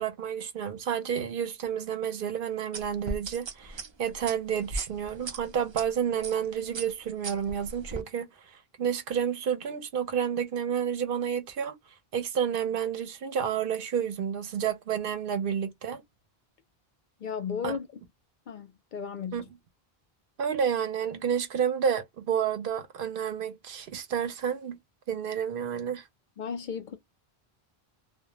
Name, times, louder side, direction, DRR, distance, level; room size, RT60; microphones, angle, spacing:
voice 1, 0.0-11.8 12.1-16.0 17.6-17.8 19.3-19.4 20.4-24.8 25.1-26.1, right 8 dB, 65° right, 0.7 m, -30 dB
sound 1, 2.7-5.8 6.2-6.5 6.7-8.0, right 3 dB, 45° right, 0.3 m, -37 dB
voice 2, 17.2-17.9 18.5-19.5 26.4-27.0, left 7 dB, 60° left, 0.6 m, -35 dB
2.1 x 2.1 x 2.8 m
omnidirectional pair, 1.0 m